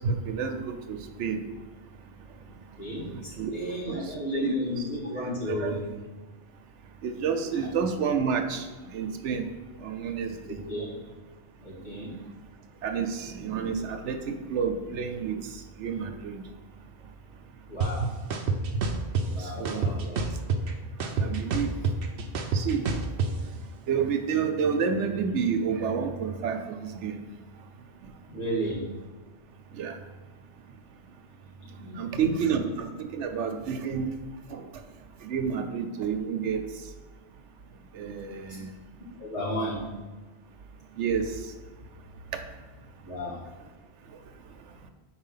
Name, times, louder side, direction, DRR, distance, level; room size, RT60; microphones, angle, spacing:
voice 1, 0.0-1.4 3.1-3.5 3.9-4.0 4.3-4.5 5.6-5.8 7.0-8.7 8.9-9.5 9.8-10.3 12.1-12.3 12.8-15.4 15.8-16.4 19.6-19.9 21.2-21.7 22.5-22.9 23.9-27.2 29.8-30.0 32.0-34.1 34.5-34.6 35.2-36.6 37.9-38.7 41.0-41.3, right 6 dB, 80° right, 7 dB, 1.0 m, -29 dB
voice 2, 2.5-5.8 7.6-7.7 10.4-11.0 11.6-12.1 17.7-18.1 19.2-20.2 28.3-28.9 31.6-32.3 39.2-39.9 43.0-43.4, equal, 75° left, -7 dB, 2.3 m, -33 dB
sound 1, 17.8-17.9 18.3-19.3 19.7-20.7 21.0-23.3, right 4 dB, 60° right, 0.8 m, -27 dB
4.8 x 4.4 x 5.6 m, 1.3 s
omnidirectional pair, 1.2 m